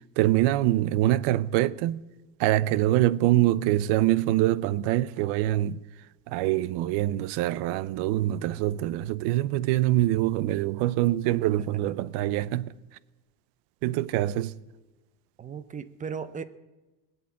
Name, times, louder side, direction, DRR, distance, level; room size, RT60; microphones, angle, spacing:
voice 1, 0.2-2.0 2.4-5.8 6.3-12.7 13.8-14.6, right 15 dB, 75° right, 0.7 m, -24 dB
voice 2, 15.4-16.4, right 6 dB, 20° right, 0.5 m, -36 dB
19.0 x 8.3 x 8.5 m
cardioid pair, 155°, 43 cm